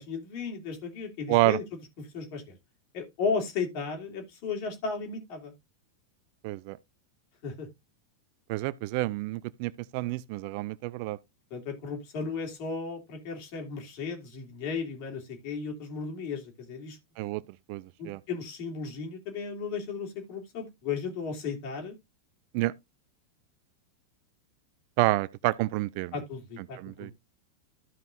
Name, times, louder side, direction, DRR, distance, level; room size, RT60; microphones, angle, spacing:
voice 1, 0.0-1.6 2.1-2.6 2.9-5.5 7.4-7.7 11.5-17.0 18.0-21.9 26.1-27.1, left 5 dB, 45° left, 2.7 m, -35 dB
voice 2, 1.3-1.6 6.4-6.8 8.5-11.2 17.2-17.4 17.7-18.2 22.5-22.7 25.0-26.1 26.8-27.1, right 20 dB, 45° right, 0.4 m, -28 dB
14.0 x 5.3 x 2.6 m
figure-of-eight pair, 90°, 0 cm